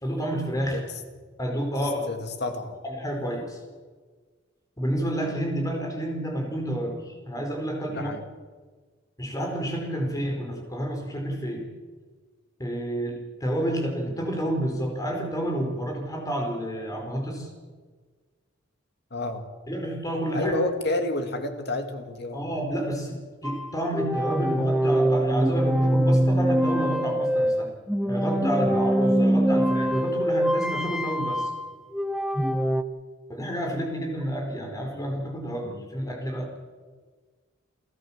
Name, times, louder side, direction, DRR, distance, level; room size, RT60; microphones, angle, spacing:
voice 1, 0.0-0.8 1.4-2.1 2.8-3.6 4.8-8.1 9.2-11.7 12.6-17.5 19.7-20.5 22.3-27.7 28.1-31.5 33.3-36.5, equal, 20° left, 2 dB, 4.9 m, -29 dB
voice 2, 1.8-2.8 7.9-8.2 19.1-19.4 20.3-22.5 28.6-28.8 35.6-35.9, left 2 dB, 55° left, 6 dB, 2.5 m, -30 dB
sound 1, 23.4-32.8, right 1 dB, ahead, 0.9 m, -24 dB
29.0 x 14.0 x 7.4 m, 1.4 s
head